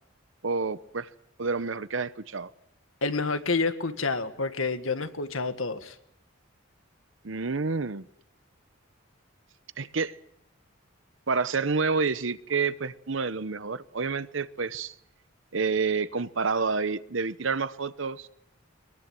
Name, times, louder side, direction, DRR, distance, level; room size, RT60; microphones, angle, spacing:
voice 1, 0.4-1.1 1.4-2.5 7.2-8.0 9.8-10.2 11.3-14.9 15.5-18.3, right 4 dB, 70° right, 0.9 m, -29 dB
voice 2, 3.0-6.0, left 3 dB, 80° left, 1.9 m, -28 dB
22.5 x 22.5 x 7.7 m
head